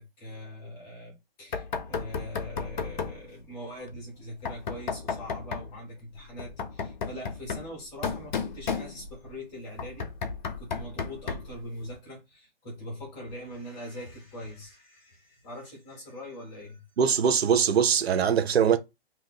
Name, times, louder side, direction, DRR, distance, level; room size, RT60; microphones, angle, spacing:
voice 1, 0.0-10.1 10.6-16.8, equal, 10° left, 0.7 m, -42 dB
Knock, 1.5-3.2 4.5-5.7 6.4-9.3 9.8-11.6, left 5 dB, 45° left, 0.7 m, -33 dB
voice 2, 17.0-18.8, right 7 dB, 75° right, 0.7 m, -22 dB
2.8 x 2.6 x 3.9 m
hypercardioid pair, 170°, 31 cm